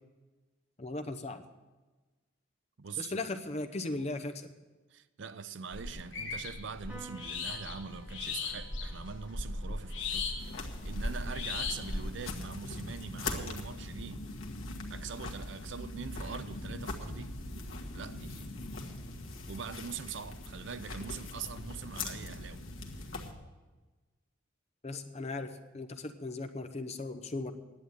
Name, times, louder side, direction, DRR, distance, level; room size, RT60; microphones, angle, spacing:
voice 1, 0.8-1.4 3.0-4.5 24.8-27.5, left 2 dB, 30° left, 0.8 m, -37 dB
voice 2, 2.8-3.3 4.9-10.3 10.8-14.3 14.9-17.4 17.9-18.6 19.5-22.6, right 5 dB, 65° right, 0.5 m, -43 dB
sound 1, 5.7-12.1, left 3 dB, 70° left, 1.8 m, -37 dB
Piano, 6.9-13.6, right 2 dB, 5° right, 1.4 m, -57 dB
sound 2, 10.4-23.3, left 2 dB, 90° left, 1.5 m, -41 dB
10.5 x 8.0 x 8.7 m
head